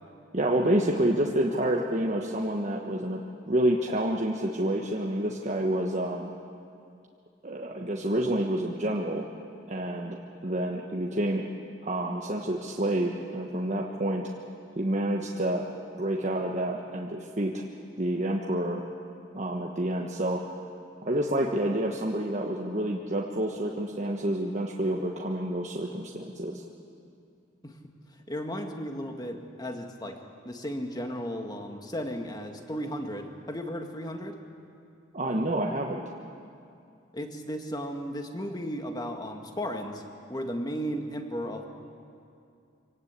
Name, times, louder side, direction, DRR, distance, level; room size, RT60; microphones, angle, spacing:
voice 1, 0.3-3.2 3.5-6.3 7.4-9.3 9.7-11.4 11.8-14.3 14.8-15.6 16.0-17.6 18.0-18.8 19.3-20.4 21.0-26.6 35.1-36.0, right 1 dB, 40° right, -1 dB, 1.4 m, -28 dB
voice 2, 28.3-30.2 30.5-34.4 37.1-40.0 40.3-41.7, equal, 20° left, 4 dB, 1.9 m, -35 dB
25.5 x 18.5 x 8.4 m, 2.5 s
head